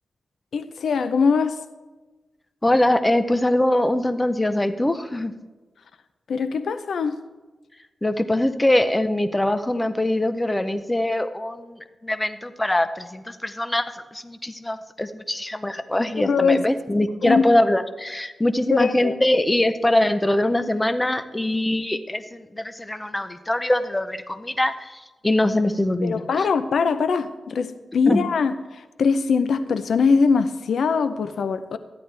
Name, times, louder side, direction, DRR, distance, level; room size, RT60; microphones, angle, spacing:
voice 1, 0.5-1.6 6.3-7.2 16.2-16.6 17.2-17.5 18.7-19.1 26.0-31.8, left 5 dB, 75° left, 11 dB, 0.6 m, -22 dB
voice 2, 2.6-5.3 8.0-26.2 28.1-28.3, left 1 dB, 15° left, 10 dB, 0.6 m, -23 dB
14.0 x 10.5 x 3.3 m, 1.2 s
wide cardioid pair, 95°, 0 cm